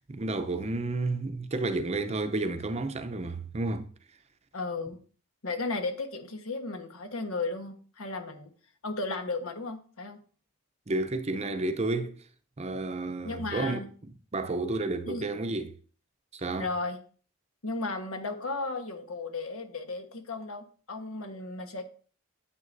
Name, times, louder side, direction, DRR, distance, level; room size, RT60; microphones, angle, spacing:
voice 1, 0.0-3.9 10.9-12.2 12.6-13.8 14.3-15.7 16.3-16.7, right 2 dB, 30° right, 0.6 m, -31 dB
voice 2, 4.5-5.0 5.4-8.5 8.8-10.2 13.2-13.9 15.1-15.2 16.6-17.0 17.6-21.8, left 3 dB, 75° left, 1.2 m, -34 dB
9.4 x 8.2 x 2.6 m
head